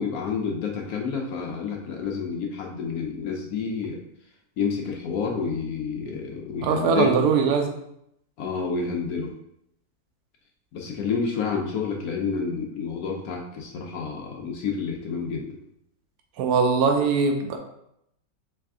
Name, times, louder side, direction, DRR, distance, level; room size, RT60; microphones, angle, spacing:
voice 1, 0.0-4.0 4.6-7.2 8.4-9.3 10.7-15.6, left 5 dB, 75° left, 1 dB, 0.9 m, -29 dB
voice 2, 6.6-7.7 16.4-17.6, right 5 dB, 75° right, 3 dB, 0.9 m, -21 dB
3.4 x 3.3 x 3.5 m, 0.78 s
omnidirectional pair, 2.0 m